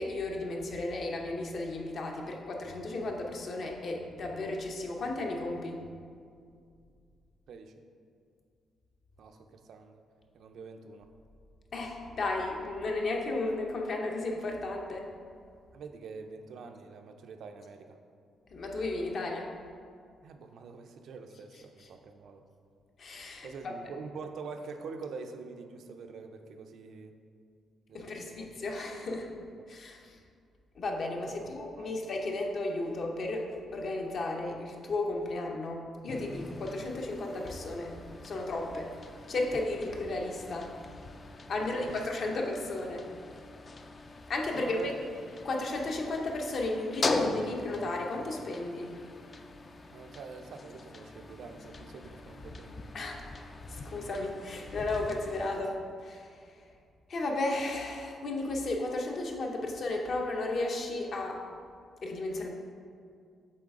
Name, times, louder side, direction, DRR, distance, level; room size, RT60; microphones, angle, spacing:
voice 1, 0.0-5.8 11.7-15.1 18.5-19.5 21.8-21.9 23.0-23.7 27.9-29.3 29.7-30.2 30.8-38.9 39.3-40.7 41.5-43.1 44.3-44.9 45.4-49.0 52.9-53.2 53.7-56.7 57.1-61.5 62.0-62.5, left 2 dB, 50° left, 1 dB, 0.7 m, -34 dB
voice 2, 7.5-7.8 9.2-10.0 10.3-11.1 15.7-18.0 20.2-22.4 23.4-27.1 27.9-28.5 31.3-31.4 31.8-32.0 41.5-42.4 44.6-45.5 49.9-52.8, right 4 dB, 65° right, 6 dB, 0.4 m, -45 dB
sound 1, 36.1-55.6, left 3 dB, 30° left, 0.3 m, -41 dB
7.6 x 4.0 x 3.6 m, 2.3 s
cardioid pair, 135°, 0 cm